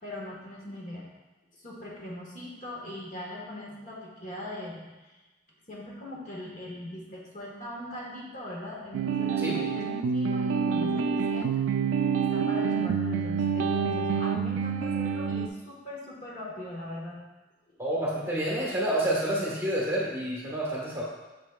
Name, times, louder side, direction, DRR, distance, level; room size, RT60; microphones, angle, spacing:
voice 1, 0.0-1.0 1.5-5.2 5.7-11.5 12.3-17.2, left 1 dB, 45° left, -4 dB, 1.3 m, -40 dB
sound 1, 8.9-15.5, right 6 dB, 90° right, 0.3 m, -27 dB
voice 2, 17.8-21.0, right 1 dB, 15° right, -5 dB, 1.3 m, -28 dB
7.2 x 6.1 x 2.3 m, 1.1 s
head